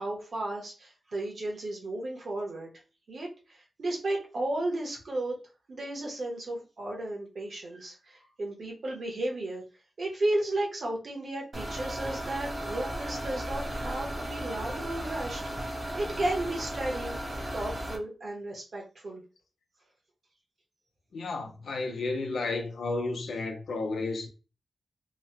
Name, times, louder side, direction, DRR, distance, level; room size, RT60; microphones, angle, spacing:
voice 1, 0.0-2.7 3.1-5.4 5.7-9.6 10.0-15.4 15.7-17.2 17.5-19.2, right 1 dB, 50° right, 0.9 m, -34 dB
sound 1, 11.5-18.0, right 1 dB, 25° right, 0.6 m, -35 dB
voice 2, 21.1-24.3, left 3 dB, 75° left, 0.6 m, -32 dB
3.0 x 2.1 x 2.8 m
wide cardioid pair, 175°, 0 cm